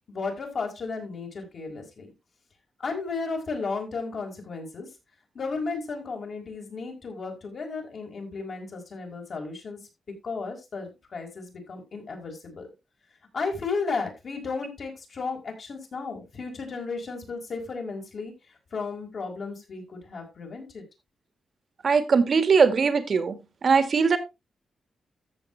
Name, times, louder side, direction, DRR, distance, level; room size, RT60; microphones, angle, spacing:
voice 1, 0.1-2.1 2.8-4.9 5.3-9.8 10.2-12.7 13.3-18.3 18.7-20.8, left 4 dB, 55° left, 1 dB, 4.7 m, -34 dB
voice 2, 21.8-23.4 23.6-24.2, right 5 dB, 50° right, 10 dB, 1.7 m, -20 dB
13.5 x 7.5 x 3.2 m, 0.24 s
wide cardioid pair, 130°, 0 cm